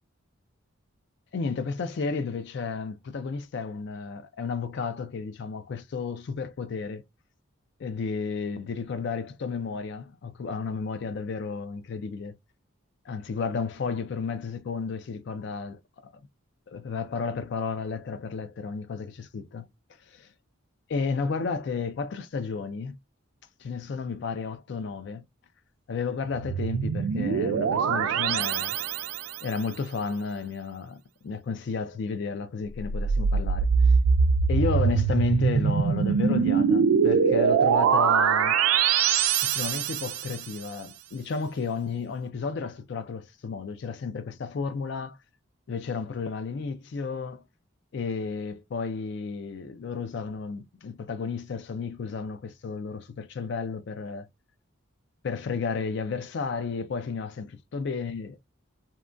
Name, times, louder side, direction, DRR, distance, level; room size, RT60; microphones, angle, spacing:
voice 1, 1.3-7.0 7.8-12.4 13.1-16.1 16.7-19.7 20.1-20.3 20.9-23.0 23.6-25.2 25.9-28.8 29.4-33.7 34.5-38.6 39.4-45.2 45.7-47.4 47.9-54.3 55.2-58.4, left 5 dB, 55° left, 0.3 m, -32 dB
sound 1, 26.3-29.4 32.7-40.4, right 6 dB, 80° right, 0.3 m, -23 dB
2.8 x 2.2 x 2.5 m
head